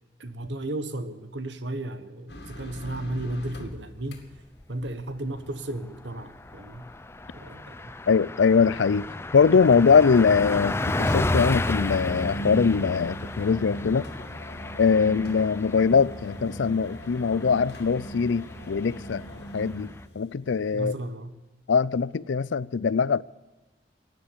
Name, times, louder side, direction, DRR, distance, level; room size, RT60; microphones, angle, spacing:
voice 1, 0.2-4.2 4.7-6.9 7.3-7.9 20.7-21.4, right 1 dB, 75° right, 1.3 m, -34 dB
sound 1, 2.3-4.4 8.2-8.3 10.2-10.3 11.7-20.4 20.7-20.9, right 1 dB, 65° left, 2.3 m, -40 dB
Car passing by, 4.4-5.0 5.4-5.5 5.8-20.0, left 2 dB, 15° left, 0.4 m, -33 dB
voice 2, 8.1-9.1 9.3-14.1 14.8-19.2 19.5-19.9 20.2-20.9 21.7-23.2, left 5 dB, 80° left, 0.4 m, -22 dB
16.5 x 9.9 x 8.6 m
head